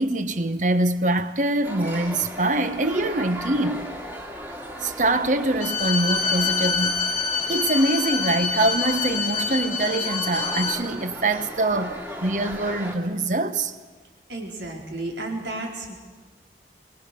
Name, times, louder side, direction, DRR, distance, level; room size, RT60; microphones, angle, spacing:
voice 1, 0.0-3.9 4.8-7.1 7.5-13.7, right 2 dB, 45° right, 1.0 m, -24 dB
sound 1, 1.6-13.0, equal, 10° right, 2.4 m, -36 dB
Bowed string instrument, 5.6-10.8, left 5 dB, 40° left, 1.4 m, -26 dB
voice 2, 14.3-16.0, right 2 dB, 85° right, 4.3 m, -32 dB
24.5 x 21.0 x 6.9 m
head